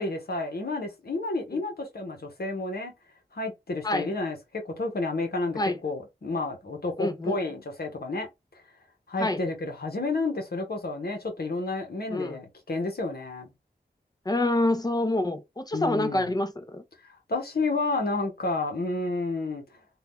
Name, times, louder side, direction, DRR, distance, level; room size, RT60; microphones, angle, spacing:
voice 1, 0.0-2.9 3.3-8.3 9.1-13.5 15.7-16.3 17.3-19.6, left 3 dB, 60° left, 1.0 m, -30 dB
voice 2, 7.0-7.4 9.2-9.4 12.1-12.4 14.3-16.8, left 1 dB, 20° left, 0.7 m, -26 dB
2.7 x 2.4 x 3.6 m
wide cardioid pair, 60°, 18 cm